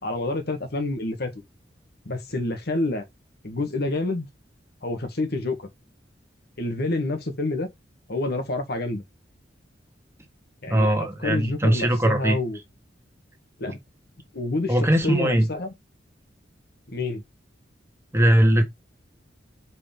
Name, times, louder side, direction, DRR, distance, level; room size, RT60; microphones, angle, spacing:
voice 1, 0.0-1.3 2.0-3.0 3.4-4.3 4.8-5.7 6.6-7.7 8.1-9.0 10.6-12.6 13.6-13.8 14.3-15.7 16.9-17.2, left 2 dB, 60° left, 1.5 m, -28 dB
voice 2, 10.7-12.4 14.7-15.5 18.1-18.6, right 1 dB, 15° right, 1.5 m, -20 dB
5.2 x 4.9 x 3.7 m
head